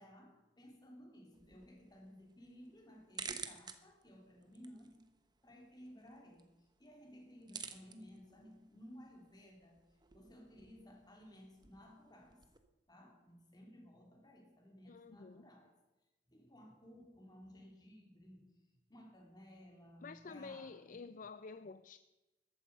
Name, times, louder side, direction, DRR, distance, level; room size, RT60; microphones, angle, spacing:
voice 1, 0.0-5.2 5.4-6.5 6.8-9.8 10.1-12.4 12.9-15.8 16.3-18.5 18.9-21.0, equal, 25° left, 3.3 m, -57 dB
sound 1, 1.3-12.6, right 5 dB, 25° right, 1.1 m, -53 dB
voice 2, 14.9-15.5 20.0-22.0, left 4 dB, 50° left, 0.5 m, -50 dB
14.5 x 12.0 x 5.4 m
head